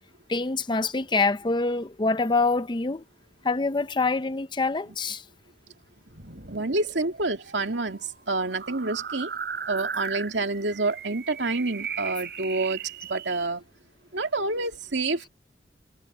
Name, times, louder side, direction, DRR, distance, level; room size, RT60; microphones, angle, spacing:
voice 1, 0.3-3.0 3.4-5.2, left 3 dB, 25° left, 0.6 m, -25 dB
sound 1, 6.1-13.5, right 6 dB, 60° right, 6.7 m, -37 dB
voice 2, 6.5-9.3 9.7-12.8 13.1-13.6 14.1-15.3, right 3 dB, 85° right, 2.4 m, -28 dB
head